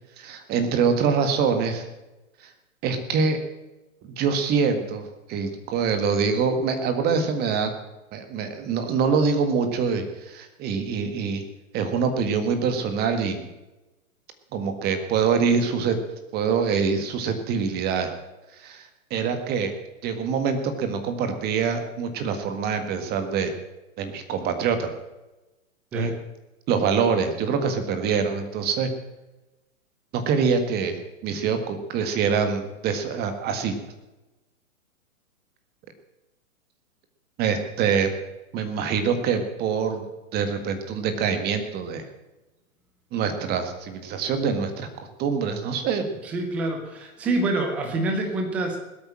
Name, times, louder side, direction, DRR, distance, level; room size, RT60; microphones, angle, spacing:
voice 1, 0.2-1.8 2.8-3.4 4.0-7.7 8.1-11.4 11.7-13.5 14.5-16.0 16.3-18.1 18.6-19.7 20.0-23.5 24.0-24.9 25.9-26.1 26.7-28.9 30.1-33.7 37.4-38.1 38.5-40.0 40.3-42.1 43.1-44.9 45.2-46.2, right 6 dB, 20° right, 7 dB, 1.7 m, -25 dB
voice 2, 46.2-48.8, right 2 dB, 5° right, 4 dB, 0.4 m, -26 dB
19.0 x 8.7 x 7.5 m, 1.1 s
hypercardioid pair, 145°, 43 cm